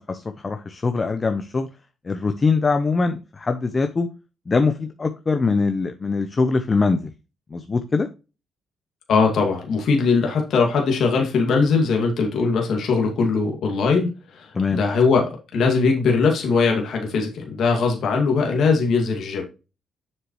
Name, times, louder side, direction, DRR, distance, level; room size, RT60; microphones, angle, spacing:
voice 1, 0.0-1.7 2.0-4.1 4.5-7.1 7.5-8.1 14.5-14.8, left 4 dB, 30° left, 8 dB, 0.8 m, -22 dB
voice 2, 9.1-19.4, left 4 dB, 65° left, 1 dB, 2.2 m, -20 dB
7.5 x 6.7 x 3.1 m, 0.30 s
cardioid pair, 90°, 0 cm